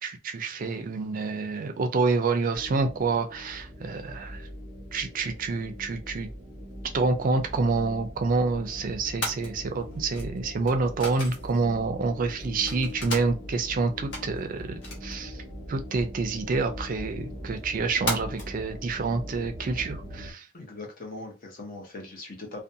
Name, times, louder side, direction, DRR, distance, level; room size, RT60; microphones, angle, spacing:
voice 1, 0.0-4.4 4.9-6.3 6.9-14.7 15.0-15.3 15.7-20.4, right 4 dB, 45° right, 0.4 m, -28 dB
sound 1, 2.5-20.3, equal, ahead, 0.9 m, -41 dB
sound 2, 6.0-18.6, left 1 dB, 70° left, 1.0 m, -40 dB
voice 2, 20.5-22.6, left 2 dB, 50° left, 0.8 m, -40 dB
2.5 x 2.2 x 2.7 m
head